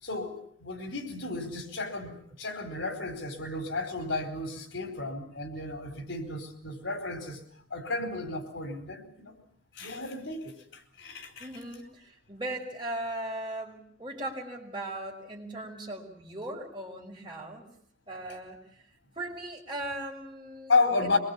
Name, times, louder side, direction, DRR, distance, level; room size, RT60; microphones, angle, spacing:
voice 1, 0.0-7.4 7.7-9.3 9.7-11.5 20.7-21.2, left 3 dB, 90° left, 7 dB, 4.5 m, -32 dB
voice 2, 11.4-17.7 18.1-18.6 19.2-20.7 21.0-21.2, right 1 dB, 25° right, 0 dB, 5.4 m, -38 dB
24.0 x 21.5 x 8.7 m, 0.63 s
head